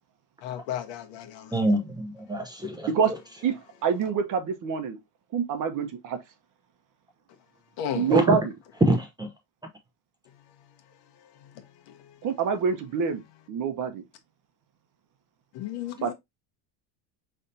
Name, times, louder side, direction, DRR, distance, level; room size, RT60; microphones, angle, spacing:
voice 1, 0.4-1.5 7.8-8.1 15.5-16.1, left 10 dB, 65° left, 1.2 m, -33 dB
voice 2, 1.5-3.2 8.1-8.4 8.9-9.3, right 1 dB, 10° right, 0.7 m, -26 dB
voice 3, 3.8-5.0 5.3-6.2 7.9-8.4 12.2-13.2 13.5-14.0 16.0-16.1, right 6 dB, 40° right, 1.0 m, -25 dB
5.4 x 3.4 x 2.7 m
cardioid pair, 140°, 47 cm